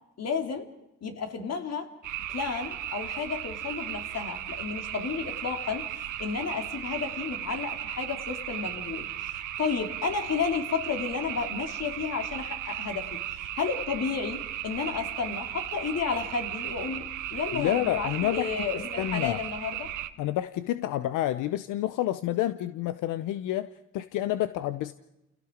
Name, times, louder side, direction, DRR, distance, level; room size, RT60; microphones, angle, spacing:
voice 1, 0.2-0.7 1.0-1.9 2.3-17.0 17.3-19.9, left 5 dB, 55° left, 5 dB, 2.9 m, -32 dB
sound 1, 2.0-20.1, right 12 dB, 85° right, 1.2 m, -36 dB
voice 2, 17.5-18.5 19.0-19.4 20.2-23.7 23.9-24.9, left 13 dB, 90° left, 13 dB, 0.7 m, -29 dB
30.0 x 17.0 x 5.1 m, 0.90 s
cardioid pair, 90°, 30 cm